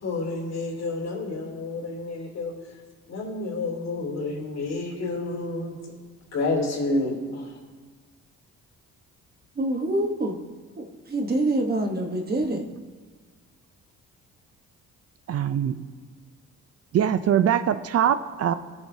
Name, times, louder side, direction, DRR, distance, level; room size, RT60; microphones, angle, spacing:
voice 1, 0.0-2.5 3.1-5.7 6.3-7.5, left 2 dB, 60° left, -1 dB, 3.0 m, -29 dB
voice 2, 9.5-10.4 10.8-12.6, right 1 dB, 30° right, 3 dB, 1.1 m, -26 dB
voice 3, 15.3-15.8 16.9-18.5, right 9 dB, 55° right, 12 dB, 0.5 m, -22 dB
18.0 x 7.0 x 2.8 m, 1.5 s
cardioid pair, 90°, 30 cm